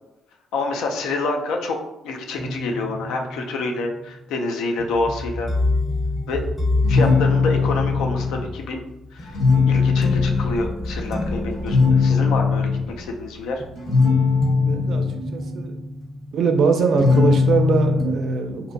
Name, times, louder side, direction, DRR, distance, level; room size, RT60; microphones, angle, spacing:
voice 1, 0.5-1.8 2.0-5.5 6.3-6.4 6.9-8.8 9.1-9.4 9.7-12.7 13.0-13.6, left 3 dB, 90° left, 3 dB, 0.3 m, -27 dB
sound 1, 2.4-17.6 18.0-18.1, left 2 dB, 5° left, 0.6 m, -29 dB
sound 2, 6.8-8.5 9.2-10.6 11.7-12.9 13.8-15.2 17.0-18.2, left 5 dB, 70° left, 0.9 m, -19 dB
voice 2, 14.7-15.0 15.3-15.7 16.3-18.7, right 4 dB, 65° right, 5 dB, 0.3 m, -21 dB
2.6 x 2.1 x 2.6 m, 0.91 s
cardioid pair, 90°, 0 cm